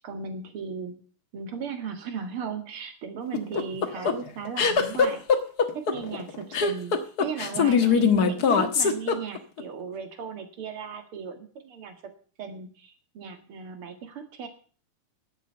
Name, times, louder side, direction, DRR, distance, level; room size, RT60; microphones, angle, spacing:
voice 1, 0.0-1.0 1.3-5.2 5.7-12.1 12.4-14.5, right 6 dB, 45° right, 7 dB, 2.3 m, -36 dB
sound 1, 3.3-9.6, left 6 dB, 60° left, 1.0 m, -22 dB
10.5 x 8.3 x 8.0 m, 0.41 s
omnidirectional pair, 3.8 m